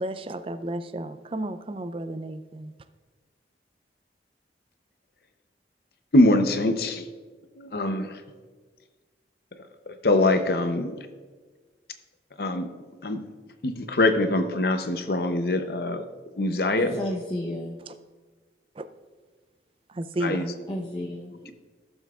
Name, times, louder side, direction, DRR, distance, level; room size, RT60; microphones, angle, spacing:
voice 1, 0.0-2.7 17.9-18.0 18.8-18.9 19.9-20.5, right 1 dB, 30° right, 12 dB, 0.4 m, -32 dB
voice 2, 6.1-7.0 7.6-8.2 9.9-10.9 12.4-12.7 13.0-13.2 13.6-16.0 16.4-16.9 20.2-20.5, left 2 dB, 60° left, 8 dB, 0.7 m, -23 dB
voice 3, 16.8-17.8 20.7-21.5, left 1 dB, 25° left, -4 dB, 0.8 m, -32 dB
16.0 x 7.0 x 2.4 m, 1.4 s
head